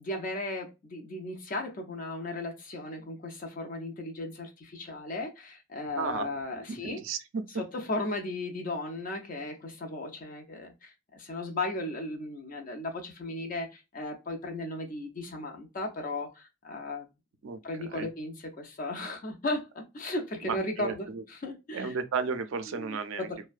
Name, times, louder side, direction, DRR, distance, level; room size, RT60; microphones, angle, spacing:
voice 1, 0.0-7.0 7.5-17.1 17.6-21.9 22.8-23.4, left 2 dB, 40° left, 0.4 m, -36 dB
voice 2, 6.0-6.3 6.7-7.4 17.4-17.6 17.9-18.1 20.4-21.2 21.7-23.3, right 5 dB, 65° right, 0.4 m, -34 dB
2.5 x 2.1 x 2.3 m
head